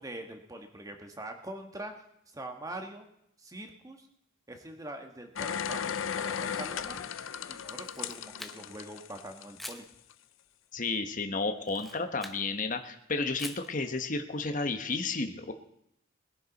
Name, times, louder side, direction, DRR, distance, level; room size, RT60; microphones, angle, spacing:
voice 1, 0.0-1.9 2.3-3.1 3.4-4.1 4.5-5.9 6.2-7.0 7.5-9.8, right 1 dB, 15° right, 4 dB, 1.5 m, -43 dB
sound 1, 5.4-9.7 10.1-10.2, left 8 dB, 75° left, 0.6 m, -36 dB
Camera, 7.7-8.9 9.6-9.9 11.6-12.4 13.4-13.7, left 1 dB, ahead, 0.8 m, -45 dB
voice 2, 10.7-15.5, left 3 dB, 40° left, 7 dB, 1.0 m, -32 dB
21.0 x 11.0 x 4.1 m, 0.76 s
head